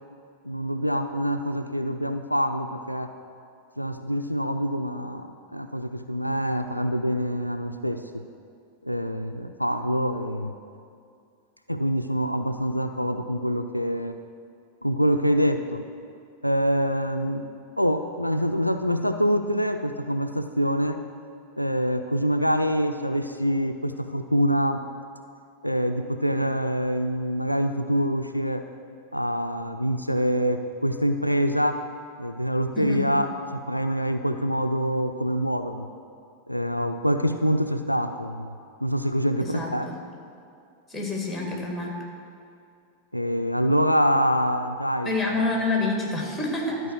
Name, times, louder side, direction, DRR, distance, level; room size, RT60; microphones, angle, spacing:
voice 1, 0.4-3.1 3.8-8.2 8.8-10.5 11.7-14.2 14.8-15.8 16.4-17.5 17.8-21.0 21.6-24.8 25.6-28.6 29.1-31.8 32.2-35.9 36.5-38.5 38.8-39.9 43.1-45.4, equal, 90° left, 7 dB, 0.4 m, -25 dB
voice 2, 32.8-33.1 39.4-39.9 40.9-41.9 45.0-46.8, left 2 dB, 5° left, -1 dB, 2.1 m, -27 dB
12.5 x 4.6 x 6.3 m, 2.4 s
figure-of-eight pair, 90°, 0 cm